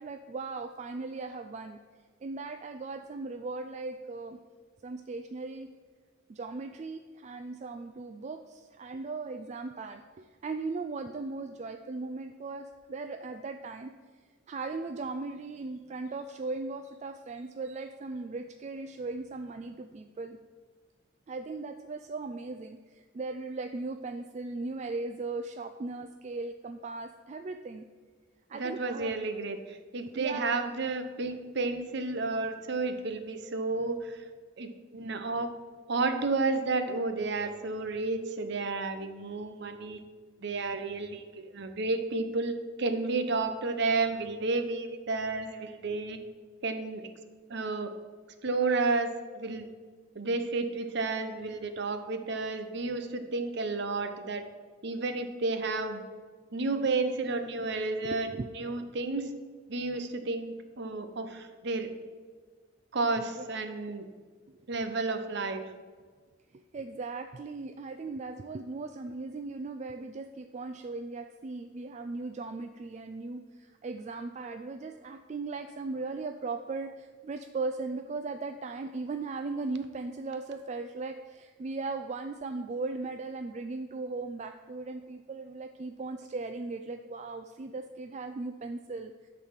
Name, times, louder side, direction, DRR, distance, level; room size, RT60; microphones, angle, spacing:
voice 1, 0.0-1.8 2.2-4.4 4.8-5.7 6.3-13.9 14.5-20.4 21.3-27.9 28.5-29.2 30.1-30.6 58.0-58.5 59.9-60.0 63.4-63.5 64.5-64.6 66.5-89.3, right 3 dB, 35° right, 7 dB, 0.3 m, -38 dB
voice 2, 28.5-34.2 34.6-35.5 35.9-40.0 40.4-46.2 46.6-47.1 47.5-47.9 48.4-49.7 50.1-54.4 54.8-56.0 56.5-59.3 59.7-61.9 62.9-64.1 64.7-65.6, right 3 dB, 55° right, 8 dB, 0.8 m, -31 dB
10.0 x 4.1 x 7.2 m, 1.5 s
head